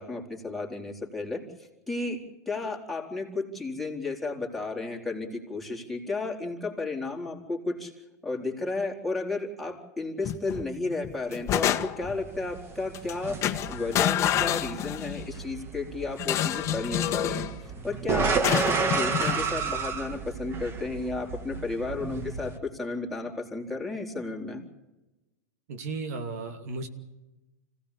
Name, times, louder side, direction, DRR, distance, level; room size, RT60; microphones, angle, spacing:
voice 1, 0.0-1.4 1.9-2.2 2.5-7.9 8.2-17.5 17.8-24.6, left 3 dB, ahead, -2 dB, 4.2 m, -33 dB
sound 1, 10.2-10.7 11.0-12.2 12.9-13.1 13.4-15.3 16.2-17.5 18.4-19.4, left 12 dB, 35° left, 1.5 m, -28 dB
sound 2, 12.1-22.6, right 5 dB, 25° right, 2.1 m, -32 dB
voice 2, 25.7-26.9, right 3 dB, 65° right, 7 dB, 2.6 m, -34 dB
26.0 x 17.0 x 8.4 m, 1.1 s
hypercardioid pair, 115°, 9 cm